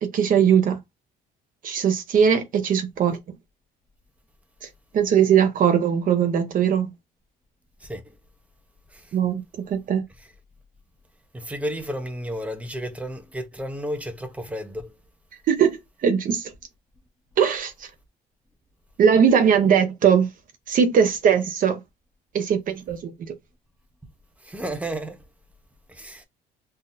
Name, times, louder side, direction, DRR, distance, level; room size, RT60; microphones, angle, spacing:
voice 1, 0.0-0.8 1.6-3.2 4.9-6.9 9.1-9.4 9.7-10.0 15.5-16.5 17.4-17.9 19.0-20.3 20.7-21.8 22.3-23.3, right 7 dB, 55° right, 0.8 m, -20 dB
voice 2, 11.3-14.9 24.4-25.2 25.9-26.2, equal, 10° right, 0.8 m, -32 dB
3.9 x 2.7 x 2.6 m
cardioid pair, 110°, 17 cm